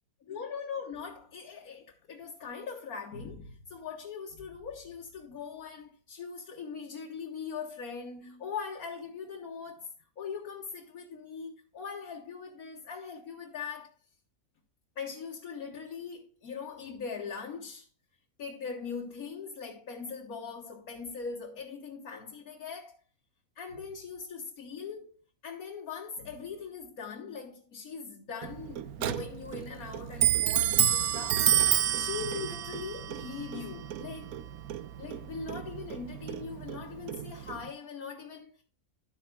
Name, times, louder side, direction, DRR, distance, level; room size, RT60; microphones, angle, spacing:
voice 1, 0.3-9.9 10.2-13.9 15.0-17.9 18.4-23.0 23.6-31.5 31.9-34.3 35.0-38.6, left 5 dB, 80° left, 1.8 m, -41 dB
Clock, 28.4-37.7, right 10 dB, 90° right, 1.1 m, -30 dB
11.5 x 9.0 x 2.3 m
omnidirectional pair, 1.5 m